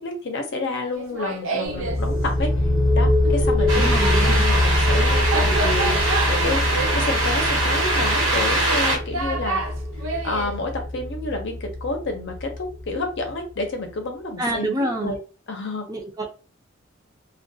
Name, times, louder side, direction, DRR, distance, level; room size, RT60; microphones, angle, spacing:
voice 1, 0.0-2.5 2.9-6.0 6.3-9.6 10.2-14.7 15.0-15.2 15.5-15.9, left 3 dB, 60° left, 4 dB, 0.6 m, -29 dB
Laughter, 0.9-2.0 3.2-10.5, right 3 dB, 90° right, 0.6 m, -30 dB
sound 1, 1.7-13.2, left 1 dB, 30° left, 0.8 m, -23 dB
voice 2, 3.7-4.4 14.4-15.2 15.9-16.3, right 1 dB, 20° right, 1 dB, 0.5 m, -27 dB
sound 2, 3.7-9.0, right 2 dB, 70° right, 1.0 m, -23 dB
2.3 x 2.2 x 2.6 m, 0.35 s
head